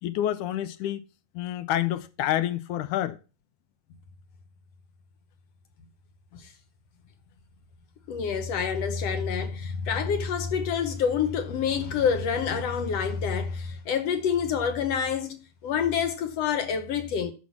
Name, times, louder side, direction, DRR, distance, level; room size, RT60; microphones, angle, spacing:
voice 1, 0.0-1.0 1.3-3.2, left 12 dB, 85° left, 2.2 m, -28 dB
voice 2, 8.1-17.3, left 7 dB, 65° left, 1.8 m, -27 dB
9.9 x 6.2 x 7.3 m
omnidirectional pair, 3.5 m